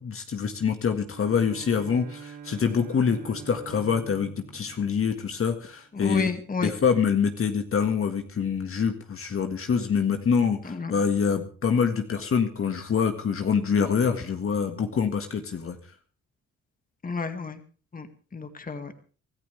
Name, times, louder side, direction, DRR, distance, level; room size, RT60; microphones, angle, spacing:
voice 1, 0.0-6.3 6.6-15.8, left 6 dB, 45° left, 5 dB, 1.9 m, -25 dB
Bowed string instrument, 1.1-5.7, right 7 dB, 85° right, 2.5 m, -45 dB
voice 2, 5.9-6.7 10.6-10.9 17.0-17.6 17.9-18.1 18.3-18.9, left 4 dB, 30° left, 8 dB, 2.1 m, -30 dB
25.0 x 14.0 x 3.4 m, 0.40 s
cardioid pair, 90°, 30 cm